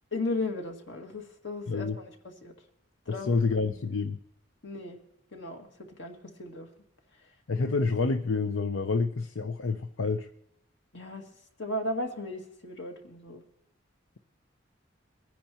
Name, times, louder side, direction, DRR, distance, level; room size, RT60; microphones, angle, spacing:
voice 1, 0.1-2.1 2.4-2.5 3.1-3.4 4.6-5.0 5.3-6.7 10.9-11.3 11.6-13.4, left 2 dB, 65° left, 3 dB, 2.0 m, -35 dB
voice 2, 3.1-4.2 7.5-10.3, left 4 dB, 85° left, 8 dB, 0.6 m, -28 dB
23.5 x 10.0 x 2.9 m, 0.81 s
head